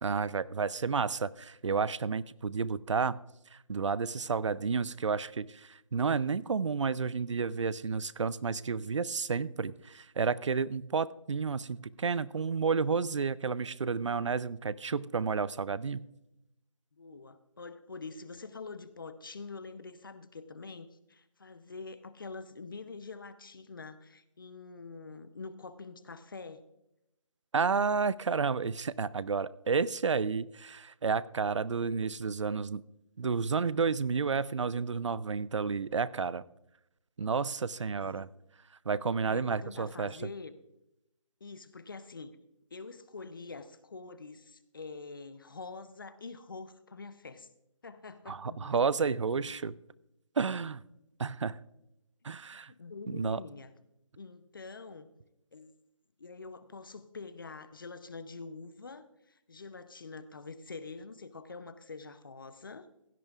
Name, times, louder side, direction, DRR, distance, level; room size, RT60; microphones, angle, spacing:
voice 1, 0.0-3.2 3.5-16.1 27.5-32.8 33.2-36.4 37.2-38.3 38.9-40.2 48.3-49.7 50.4-50.8 51.2-51.6 52.2-52.7 53.1-53.4, right 5 dB, 65° right, 19 dB, 0.5 m, -31 dB
voice 2, 16.9-26.6 37.9-38.3 39.2-40.6 41.4-42.4 42.7-47.5 47.8-49.0 49.3-49.7 52.7-53.7 54.1-55.1 55.5-55.7 56.2-62.9, left 4 dB, 40° left, 13 dB, 0.7 m, -45 dB
16.5 x 12.0 x 2.4 m, 0.86 s
figure-of-eight pair, 170°, 17 cm